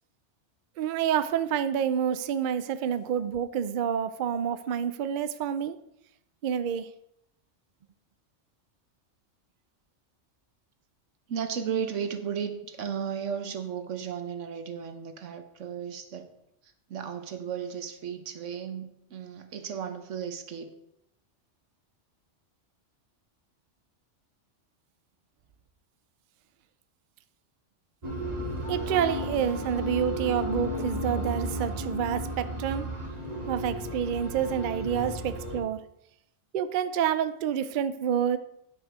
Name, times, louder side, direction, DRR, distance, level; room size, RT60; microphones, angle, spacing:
voice 1, 0.8-5.8 6.4-6.9 28.7-32.9 33.5-35.8 36.5-38.4, right 8 dB, 55° right, 0.6 m, -28 dB
voice 2, 11.3-16.3 16.6-20.7, right 7 dB, 85° right, 1.3 m, -35 dB
sound 1, 28.0-35.6, equal, 35° right, 2.2 m, -33 dB
10.0 x 6.4 x 4.6 m
omnidirectional pair, 1.2 m